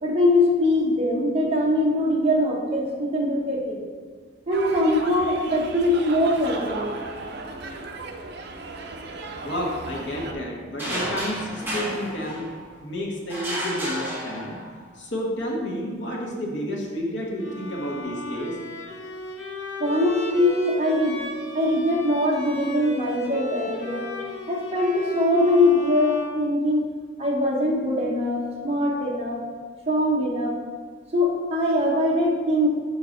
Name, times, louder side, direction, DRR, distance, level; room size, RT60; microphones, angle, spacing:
voice 1, 0.0-3.8 4.5-7.0 19.8-21.2 21.5-24.1 24.5-26.9 27.2-29.4 29.9-30.6 31.1-32.7, left 1 dB, 35° right, -2 dB, 1.0 m, -22 dB
sound 1, 4.5-10.3, right 3 dB, 60° right, 0.6 m, -36 dB
voice 2, 9.4-12.5 12.8-14.6 15.0-18.6, equal, 70° left, -1 dB, 1.2 m, -30 dB
sound 2, 10.8-12.8 13.3-14.9, equal, 10° right, 1.3 m, -31 dB
Bowed string instrument, 17.4-27.1, left 1 dB, 90° left, 1.0 m, -36 dB
6.4 x 4.7 x 3.8 m, 1.5 s
head